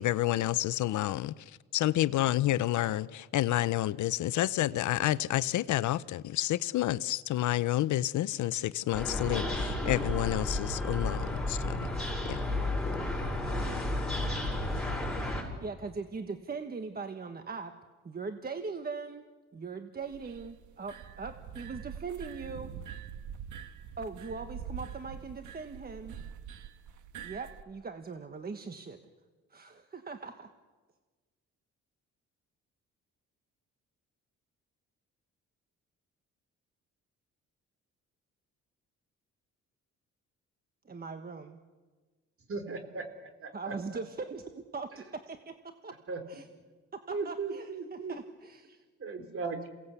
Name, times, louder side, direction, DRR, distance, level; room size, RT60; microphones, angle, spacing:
voice 1, 0.0-1.3 1.7-11.9 12.3-12.4, left 14 dB, 75° left, 18 dB, 0.7 m, -29 dB
sound 1, 8.9-15.4, left 1 dB, ahead, 6.5 m, -32 dB
voice 2, 15.3-17.7 18.0-19.2 19.5-22.7 24.0-26.1 27.2-29.0 29.5-30.5 40.8-41.6 43.5-45.5 45.8-45.9 46.3-46.5 47.1-48.8, right 4 dB, 30° right, 7 dB, 1.4 m, -40 dB
sound 2, 20.0-27.6, right 8 dB, 80° right, 1.4 m, -44 dB
voice 3, 42.5-43.0 43.4-43.7 46.1-46.4 47.1-48.1 49.0-49.7, right 4 dB, 45° right, 8 dB, 3.5 m, -37 dB
28.0 x 18.0 x 8.3 m, 1.4 s
cardioid pair, 90°, 30 cm